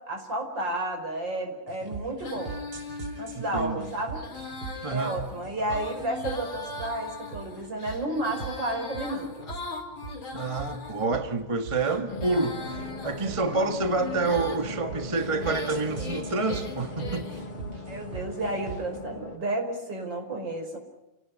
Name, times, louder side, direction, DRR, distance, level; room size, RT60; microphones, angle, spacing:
voice 1, 0.0-2.6 3.2-4.2 4.9-9.6 17.9-20.8, right 1 dB, 55° right, 5.9 m, -32 dB
sound 1, 1.7-19.0, right 4 dB, 75° right, 4.3 m, -41 dB
Female singing, 2.2-11.1 11.7-14.6 15.2-17.5, left 3 dB, 65° left, 5.1 m, -39 dB
voice 2, 3.3-3.9 4.8-5.1 10.3-17.3, right 3 dB, 15° right, 1.4 m, -28 dB
sound 2, 12.1-19.4, left 2 dB, 80° left, 3.3 m, -39 dB
29.5 x 18.0 x 10.0 m
omnidirectional pair, 2.4 m